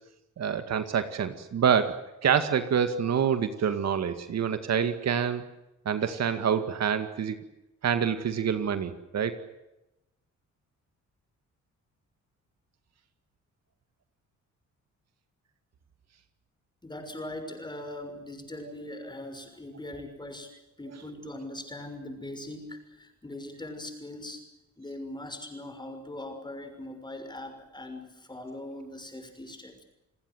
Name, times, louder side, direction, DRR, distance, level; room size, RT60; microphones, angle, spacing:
voice 1, 0.4-5.4 5.9-7.4 7.8-9.4, right 7 dB, 60° right, 9 dB, 2.1 m, -27 dB
voice 2, 16.8-20.5 20.8-24.4 24.8-29.8, left 1 dB, 15° left, 6 dB, 6.3 m, -41 dB
29.5 x 19.5 x 7.9 m, 0.92 s
cardioid pair, 115°, 30 cm